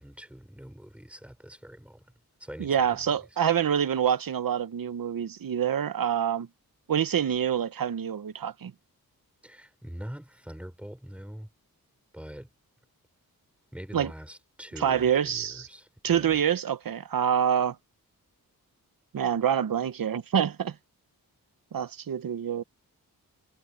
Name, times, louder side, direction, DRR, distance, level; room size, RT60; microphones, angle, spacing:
voice 1, 0.0-2.0 2.4-3.0 9.4-11.5 12.1-12.5 13.7-16.4, equal, 5° right, 4.6 m, -43 dB
voice 2, 2.6-6.5 6.9-8.7 13.9-14.1 14.8-15.7 16.0-17.8 19.1-20.7 21.7-22.6, right 8 dB, 65° right, 0.9 m, -26 dB
wide cardioid pair, 175°, 36 cm